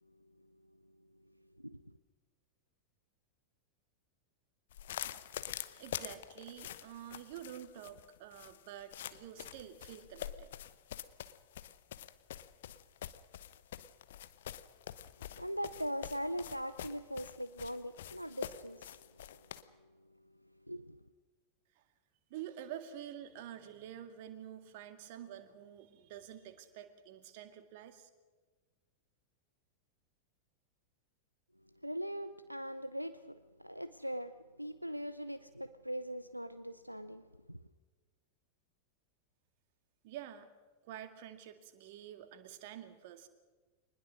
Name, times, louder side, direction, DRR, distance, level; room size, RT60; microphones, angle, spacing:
voice 1, 1.6-1.9 15.4-19.0 20.7-21.0 31.8-37.6, equal, 90° right, 13 dB, 0.6 m, -41 dB
sound 1, 4.7-19.6, left 11 dB, 60° left, 0.9 m, -46 dB
voice 2, 5.3-10.5 21.8-21.9 22.3-28.1 40.0-40.5 40.8-43.3, right 10 dB, 50° right, 8 dB, 2.0 m, -48 dB
24.0 x 20.0 x 6.5 m, 1.3 s
figure-of-eight pair, 90°, 0 cm